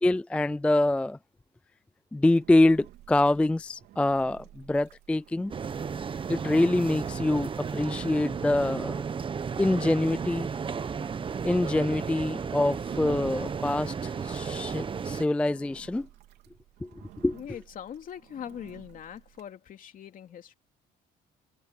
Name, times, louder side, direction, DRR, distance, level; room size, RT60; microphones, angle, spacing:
voice 1, 0.0-1.2 2.1-5.5 6.3-8.9 9.6-10.5 11.4-16.1 16.8-16.9 17.2-17.4, left 2 dB, 5° left, 0.3 m, -25 dB
Engine, 2.2-19.5, right 14 dB, 80° right, 3.6 m, -53 dB
sound 1, 5.5-15.2, right 6 dB, 30° right, 1.1 m, -33 dB
voice 2, 17.3-20.5, left 9 dB, 55° left, 2.9 m, -42 dB
cardioid pair, 110°, 17 cm